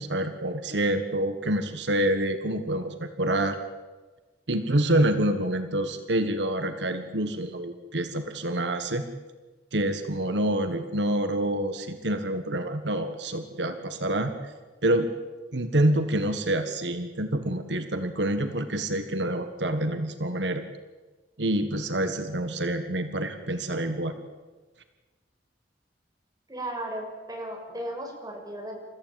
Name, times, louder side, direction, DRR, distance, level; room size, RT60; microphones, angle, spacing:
voice 1, 0.0-3.6 4.5-9.0 9.7-14.5 14.8-15.1 15.5-20.6 21.4-24.1, right 1 dB, 85° right, 8 dB, 1.6 m, -27 dB
voice 2, 26.5-28.8, right 1 dB, 20° right, 0 dB, 6.4 m, -35 dB
29.5 x 15.0 x 9.1 m, 1.3 s
head